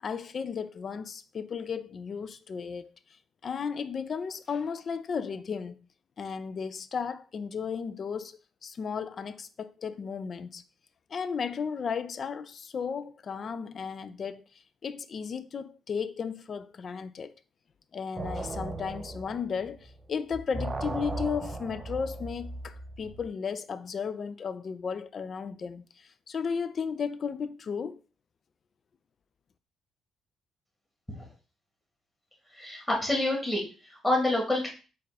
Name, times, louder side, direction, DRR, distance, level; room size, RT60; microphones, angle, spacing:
voice 1, 0.0-2.9 3.4-5.7 6.2-10.6 11.1-14.4 14.8-17.3 17.9-28.0, left 6 dB, 50° left, 0.4 m, -34 dB
sound 1, 18.1-20.0 20.3-23.3, right 2 dB, 30° right, 0.5 m, -37 dB
voice 2, 32.5-34.7, left 1 dB, 10° left, 1.9 m, -28 dB
4.2 x 2.5 x 4.1 m
cardioid pair, 90°, 0 cm